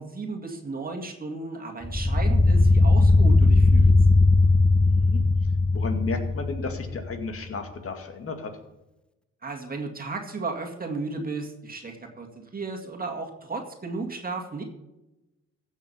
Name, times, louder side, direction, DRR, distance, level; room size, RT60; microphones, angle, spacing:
voice 1, 0.0-3.9 9.4-14.6, right 3 dB, 30° right, 2 dB, 2.1 m, -34 dB
sound 1, 1.8-7.1, left 2 dB, 5° left, 0.4 m, -19 dB
voice 2, 4.8-5.2 5.7-8.5, left 4 dB, 50° left, 5 dB, 2.1 m, -33 dB
15.5 x 6.5 x 5.6 m, 0.96 s
cardioid pair, 90°, 30 cm